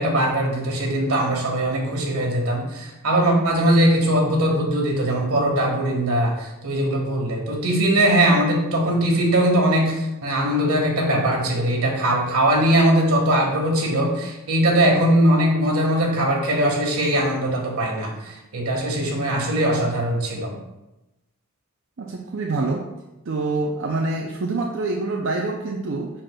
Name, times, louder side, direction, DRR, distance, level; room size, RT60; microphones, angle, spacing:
voice 1, 0.0-20.5, right 1 dB, 80° right, 0 dB, 1.6 m, -20 dB
voice 2, 22.0-22.9 23.3-26.1, right 3 dB, 55° right, 0 dB, 0.5 m, -26 dB
7.7 x 5.8 x 2.3 m, 0.96 s
head